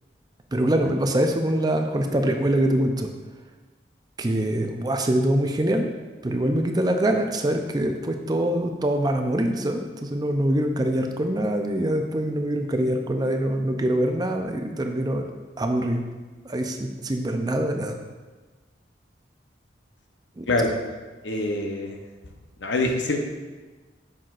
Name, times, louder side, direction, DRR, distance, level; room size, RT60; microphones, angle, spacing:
voice 1, 0.5-3.1 4.2-5.9 6.2-15.3 15.6-16.0 16.4-18.0 20.4-20.5, right 1 dB, 20° right, 4 dB, 0.5 m, -24 dB
voice 2, 21.2-22.0 22.6-23.2, left 2 dB, 85° left, 3 dB, 0.8 m, -24 dB
7.4 x 5.8 x 2.5 m, 1.3 s
head